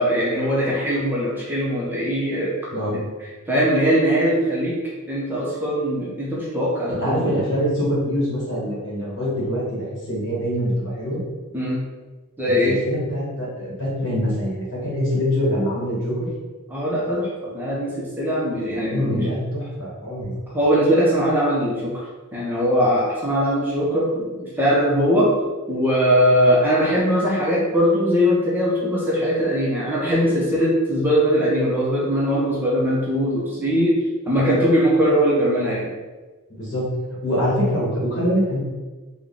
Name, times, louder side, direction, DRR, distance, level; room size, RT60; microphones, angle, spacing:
voice 1, 0.0-2.5 2.9-3.0 3.5-4.8 5.1-7.3 11.5-11.8 12.4-12.8 16.7-19.3 20.5-22.0 22.3-25.3 25.7-34.0 34.3-35.9, equal, 10° right, -7 dB, 0.7 m, -20 dB
voice 2, 6.9-11.2 12.4-16.3 18.9-20.3 36.5-36.8 37.2-38.6, equal, 55° left, -6 dB, 1.4 m, -24 dB
3.7 x 2.2 x 3.6 m, 1.3 s
head